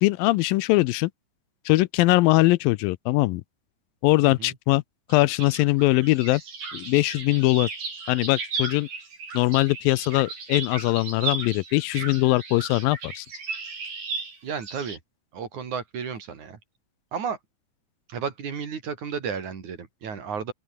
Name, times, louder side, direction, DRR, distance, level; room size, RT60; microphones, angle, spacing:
voice 1, 0.0-1.1 1.7-3.4 4.0-4.8 5.1-6.4 6.7-7.7 8.1-8.9 9.3-13.3, left 19 dB, 80° left, 2.3 m, -21 dB
voice 2, 4.2-4.5 14.4-15.0 15.3-16.6 17.1-17.4 18.1-20.5, right 6 dB, 55° right, 4.6 m, -33 dB
sound 1, 5.1-15.0, right 4 dB, 80° right, 9.0 m, -35 dB
open air
omnidirectional pair, 4.2 m